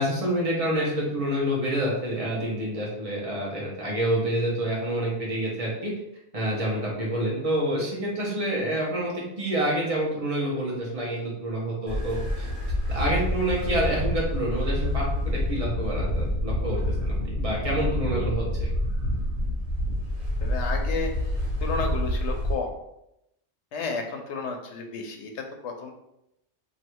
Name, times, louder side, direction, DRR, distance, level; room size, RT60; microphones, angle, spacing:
voice 1, 0.0-5.9 6.3-12.5 12.9-18.7, right 1 dB, 30° right, -4 dB, 1.2 m, -28 dB
sound 1, 11.9-22.5, equal, 65° right, 1.5 m, -27 dB
voice 2, 20.4-21.3 21.6-22.7 23.7-25.9, left 4 dB, 75° left, 3 dB, 1.0 m, -32 dB
3.1 x 2.7 x 4.5 m, 0.83 s
omnidirectional pair, 1.2 m